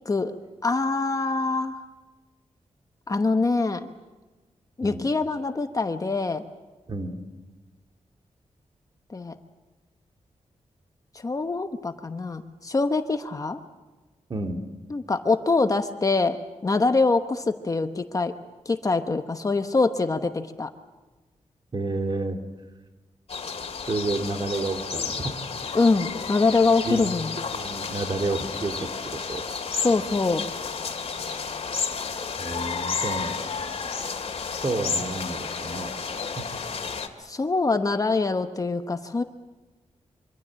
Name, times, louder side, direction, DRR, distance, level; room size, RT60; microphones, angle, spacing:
voice 1, 0.0-0.3 0.6-1.8 3.1-3.9 4.8-6.4 9.1-9.3 11.1-13.6 14.9-18.3 18.6-20.7 25.7-27.3 29.8-30.5 37.2-39.2, left 3 dB, 30° left, 7 dB, 1.0 m, -24 dB
voice 2, 21.7-22.4 23.9-25.3 26.8-27.1 27.5-28.7 29.3-29.4 29.7-29.9 32.4-33.4 34.6-36.2, right 2 dB, 40° right, 4 dB, 2.7 m, -30 dB
sound 1, 23.3-37.1, left 5 dB, 55° left, 2.5 m, -32 dB
25.5 x 25.0 x 7.7 m, 1.2 s
wide cardioid pair, 165°, 12 cm